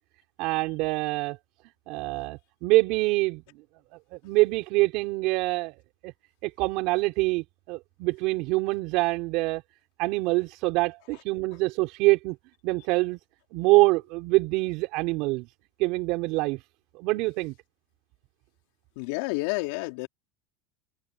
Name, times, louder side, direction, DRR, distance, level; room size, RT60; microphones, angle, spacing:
voice 1, 0.4-1.4 1.9-3.4 4.2-5.8 6.0-6.1 6.4-9.6 10.0-12.4 12.6-13.2 13.5-15.5 15.8-16.6 16.9-17.5, right 23 dB, 55° right, 4.6 m, -25 dB
voice 2, 19.0-20.1, left 25 dB, 70° left, 3.9 m, -30 dB
supercardioid pair, 140°, 0 cm